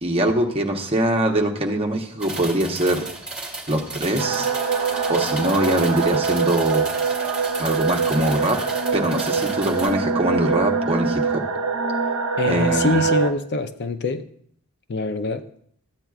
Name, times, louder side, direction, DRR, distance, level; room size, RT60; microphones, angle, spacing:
voice 1, 0.0-3.0 3.7-4.5 5.1-6.8 7.6-8.6 8.9-11.4 12.5-13.0, right 1 dB, 25° right, 2 dB, 0.9 m, -22 dB
sound 1, 2.2-9.9, right 2 dB, 5° right, 2.1 m, -34 dB
sound 2, 4.2-13.3, right 5 dB, 65° right, 0.7 m, -24 dB
voice 2, 12.4-14.2 14.9-15.4, left 3 dB, 50° left, 10 dB, 0.5 m, -24 dB
13.5 x 8.9 x 2.4 m, 0.63 s
head